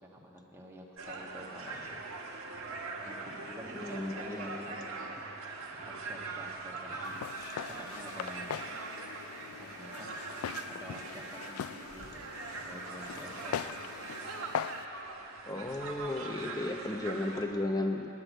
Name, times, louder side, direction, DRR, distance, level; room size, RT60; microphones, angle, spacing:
voice 1, 0.0-2.0 3.0-5.1 6.0-7.2 7.8-8.7 9.5-10.2 10.7-12.3 12.6-14.0, equal, 10° right, -2 dB, 1.3 m, -49 dB
sound 1, 1.0-17.4, right 3 dB, 70° right, 1.4 m, -42 dB
voice 2, 3.7-4.7 15.5-18.1, left 2 dB, 20° left, 5 dB, 0.8 m, -34 dB
Walk footsteps, 7.0-14.8, left 9 dB, 70° left, 0.3 m, -41 dB
9.9 x 9.5 x 9.1 m, 2.9 s
head